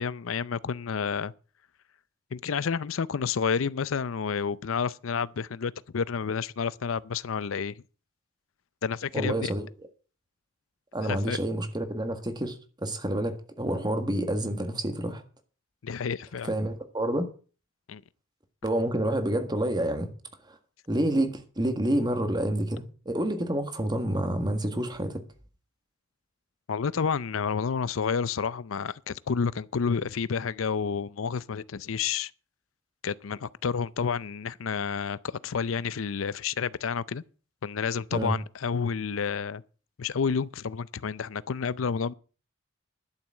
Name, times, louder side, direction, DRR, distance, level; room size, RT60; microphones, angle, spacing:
voice 1, 0.0-1.3 2.3-7.7 8.8-9.5 11.0-11.4 15.8-16.5 17.9-18.0 26.7-32.3 33.0-37.2 37.6-39.6 40.0-42.1, left 6 dB, 85° left, 0.5 m, -30 dB
voice 2, 9.1-9.7 10.9-15.2 16.5-17.3 18.6-20.1 20.5-20.6 20.9-25.2 38.1-38.3, right 1 dB, 20° right, 1.7 m, -28 dB
11.5 x 7.1 x 7.6 m
head